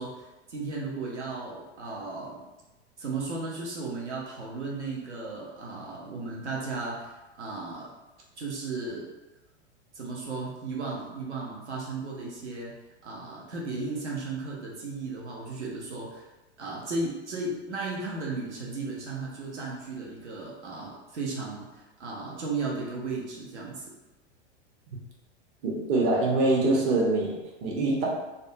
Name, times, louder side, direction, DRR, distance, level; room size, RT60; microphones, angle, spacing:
voice 1, 0.0-2.4 3.0-7.9 8.4-9.1 9.9-12.7 13.0-16.2 16.6-23.9, right 3 dB, 85° right, -3 dB, 0.7 m, -35 dB
voice 2, 25.6-28.1, right 2 dB, 45° right, -3 dB, 0.8 m, -24 dB
2.6 x 2.2 x 2.5 m, 1.1 s
figure-of-eight pair, 90°, 34 cm